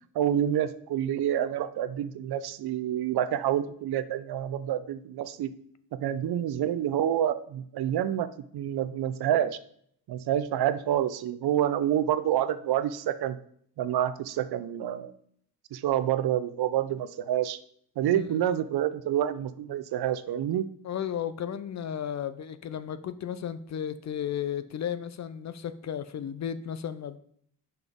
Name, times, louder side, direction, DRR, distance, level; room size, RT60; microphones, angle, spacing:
voice 1, 0.1-5.5 6.0-9.6 10.1-13.4 13.8-15.1 15.7-17.6 18.0-20.7, right 11 dB, 70° right, 13 dB, 0.6 m, -28 dB
voice 2, 18.1-18.4 20.8-27.2, left 9 dB, 45° left, 13 dB, 0.4 m, -34 dB
6.0 x 5.4 x 3.5 m, 0.64 s
cardioid pair, 125°, 40 cm